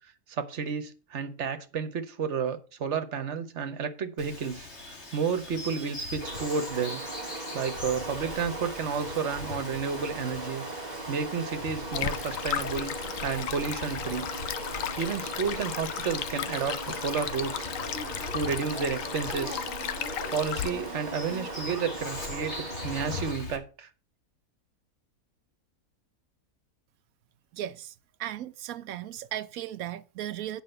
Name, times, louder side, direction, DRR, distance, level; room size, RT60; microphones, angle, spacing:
voice 1, 0.3-7.0 7.5-10.6 11.1-13.0 13.2-14.3 15.0-17.7 18.3-19.7 20.3-23.9, right 6 dB, 55° right, 1.2 m, -31 dB
Bird vocalization bird call bird song, 4.2-23.6, left 2 dB, 45° left, 2.3 m, -42 dB
sound 1, 6.2-23.4, right 3 dB, 35° right, 1.0 m, -39 dB
Stream, 11.9-20.7, left 9 dB, 65° left, 1.0 m, -35 dB
voice 2, 27.5-27.9 28.2-30.6, right 12 dB, 70° right, 1.0 m, -36 dB
8.9 x 5.0 x 6.6 m
omnidirectional pair, 1.6 m